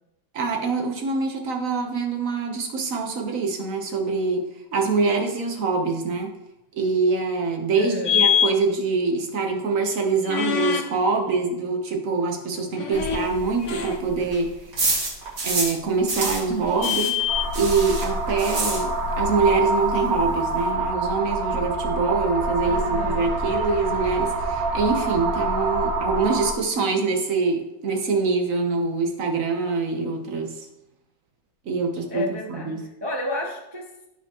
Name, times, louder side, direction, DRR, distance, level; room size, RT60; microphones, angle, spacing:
voice 1, 0.3-6.3 6.7-14.5 15.4-17.2 17.5-30.7 31.6-32.8, right 4 dB, 50° right, 3 dB, 1.4 m, -24 dB
voice 2, 7.7-8.2 22.6-23.3 32.1-33.9, left 1 dB, 25° right, -1 dB, 0.6 m, -31 dB
sound 1, 8.0-8.5 10.3-10.8 12.7-13.3 13.6-14.0 14.7-14.8 16.7-17.5, left 9 dB, 50° left, 1.1 m, -23 dB
sound 2, 12.9-15.8 16.1-19.3 19.5-19.6 20.0-20.1 20.2-20.7, right 2 dB, 65° right, 2.7 m, -28 dB
sound 3, 17.3-26.5, right 2 dB, 80° right, 1.8 m, -26 dB
14.5 x 5.0 x 3.0 m, 0.91 s
omnidirectional pair, 2.0 m